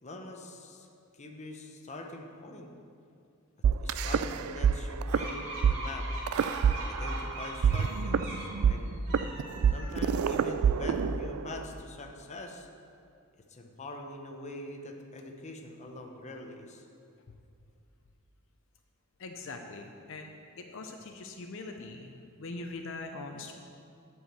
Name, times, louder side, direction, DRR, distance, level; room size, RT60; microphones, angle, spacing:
voice 1, 0.0-0.9 1.1-2.7 3.8-6.1 6.8-9.0 9.7-12.7 13.5-16.9, left 2 dB, 35° left, 2 dB, 0.7 m, -44 dB
sound 1, 3.6-4.7 5.0-5.2 5.6-5.7 6.3-7.3 7.6-11.6, right 7 dB, 90° right, 0.3 m, -26 dB
sound 2, 5.1-8.5 9.0-10.2, right 1 dB, 65° right, 2.3 m, -41 dB
voice 2, 19.2-20.3 20.6-23.5, left 3 dB, 65° left, 4 dB, 0.6 m, -42 dB
8.4 x 4.7 x 7.4 m, 2.4 s
head